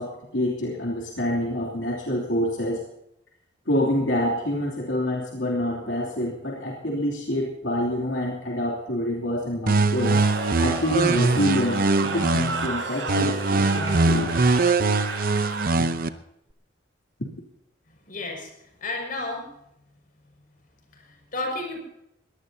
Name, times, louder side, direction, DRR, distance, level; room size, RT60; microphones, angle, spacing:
voice 1, 0.0-2.8 3.7-10.2 10.6-14.3 15.8-15.9, left 1 dB, 75° left, -2 dB, 3.0 m, -27 dB
sound 1, 9.7-12.7 13.1-16.1, right 3 dB, 50° right, 0.8 m, -22 dB
Cheering / Crowd, 9.7-16.1, right 3 dB, 80° right, 6.5 m, -33 dB
voice 2, 18.0-19.5 20.9-21.8, left 2 dB, 50° left, 2 dB, 6.1 m, -32 dB
22.0 x 17.5 x 2.8 m, 0.79 s
head